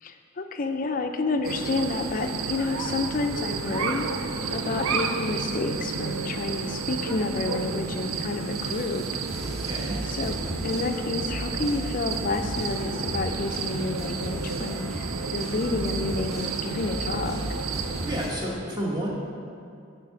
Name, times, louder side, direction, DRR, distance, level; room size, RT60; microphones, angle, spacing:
voice 1, 0.0-9.2 10.0-10.4 10.6-15.1 15.3-17.4, left 3 dB, 40° left, 6 dB, 0.4 m, -29 dB
sound 1, 1.4-18.3, right 5 dB, 90° right, 0.5 m, -32 dB
sound 2, 3.4-18.5, left 1 dB, ahead, 1.6 m, -37 dB
voice 2, 9.6-10.0 18.0-19.1, right 1 dB, 20° right, -3 dB, 1.1 m, -30 dB
7.4 x 4.5 x 5.9 m, 2.4 s
head